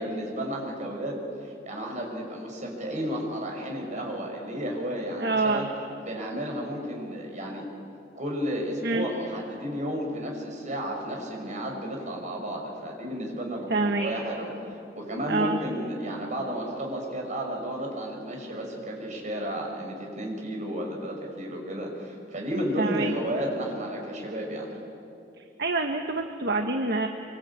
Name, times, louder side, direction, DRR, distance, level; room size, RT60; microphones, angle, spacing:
voice 1, 0.0-5.7 6.0-7.6 8.2-24.7, equal, 45° right, 0 dB, 6.1 m, -32 dB
voice 2, 5.2-5.7 8.8-9.1 13.7-14.1 15.3-15.6 22.8-23.1 25.4-27.1, right 3 dB, 60° right, 4 dB, 1.3 m, -26 dB
25.5 x 25.0 x 8.7 m, 2.7 s
head